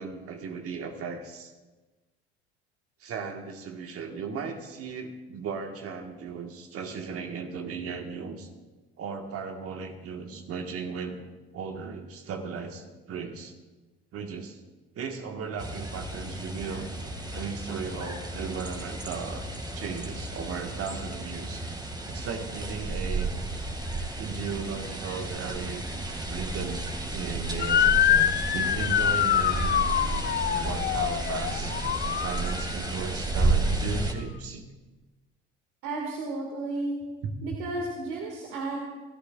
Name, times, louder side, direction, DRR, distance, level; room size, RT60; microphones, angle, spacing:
voice 1, 0.0-1.5 3.0-8.5 9.0-11.3 11.5-13.5 14.1-14.6 14.9-16.9 17.3-19.5 19.7-21.6 22.1-23.3 24.2-29.8 30.5-31.7 32.2-34.7 37.2-37.3, right 5 dB, 50° right, 4 dB, 1.6 m, -36 dB
sound 1, 15.6-34.1, right 2 dB, 15° right, 2.2 m, -32 dB
Motor vehicle (road) / Siren, 27.6-32.9, left 10 dB, 35° left, 0.6 m, -25 dB
voice 2, 35.8-36.9 37.4-38.9, right 2 dB, 65° right, 0 dB, 2.1 m, -33 dB
27.0 x 13.5 x 2.5 m, 1.2 s
hypercardioid pair, 65°, 31 cm